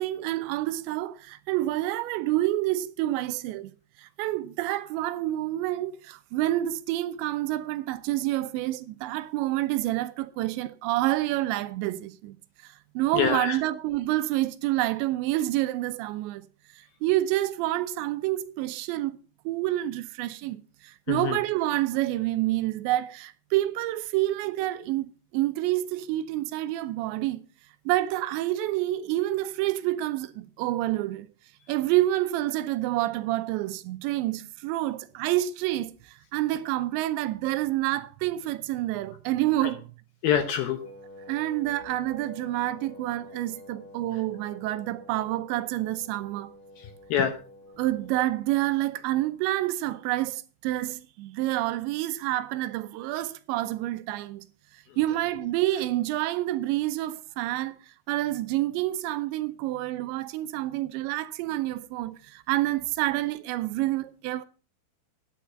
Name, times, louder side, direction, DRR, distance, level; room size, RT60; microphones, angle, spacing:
voice 1, 0.0-3.7 4.0-12.4 12.6-16.5 17.0-19.2 19.5-27.4 27.9-31.3 31.7-39.8 41.3-46.5 47.8-54.5 55.0-57.8 58.1-64.5, right 15 dB, 80° right, 2.9 m, -28 dB
voice 2, 13.1-13.6 21.1-21.4 39.6-39.7 40.2-40.8 46.8-47.3, left 9 dB, 75° left, 2.4 m, -26 dB
Wind instrument woodwind instrument, 40.8-48.4, left 1 dB, 5° left, 2.0 m, -48 dB
9.8 x 9.3 x 5.7 m
omnidirectional pair, 5.3 m